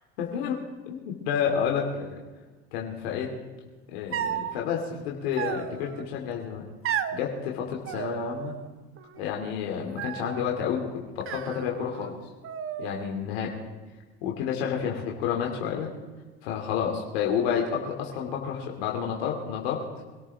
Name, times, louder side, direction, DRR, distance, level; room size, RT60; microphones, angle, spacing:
voice 1, 0.2-0.6 0.9-2.2 2.7-3.3 3.9-6.6 7.1-8.5 9.2-12.1 12.8-13.5 14.2-15.9 16.4-19.8, left 7 dB, 80° left, 0 dB, 2.9 m, -30 dB
sound 1, 4.1-4.6 5.4-6.0 6.8-7.2 7.9-8.7 9.0-9.5 10.0-10.5 11.2-12.1 12.4-13.2, right 9 dB, 45° right, 1.1 m, -34 dB
25.5 x 13.5 x 3.7 m, 1.3 s
hypercardioid pair, 85°, 31 cm